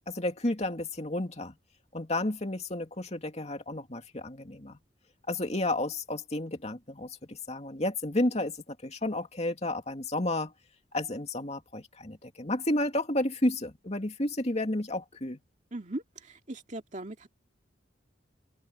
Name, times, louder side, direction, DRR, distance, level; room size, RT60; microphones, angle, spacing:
voice 1, 0.1-1.5 1.9-4.8 5.3-10.5 10.9-15.4, left 1 dB, 35° left, 2.5 m, -31 dB
voice 2, 15.7-17.3, right 1 dB, 40° right, 2.4 m, -39 dB
open air
head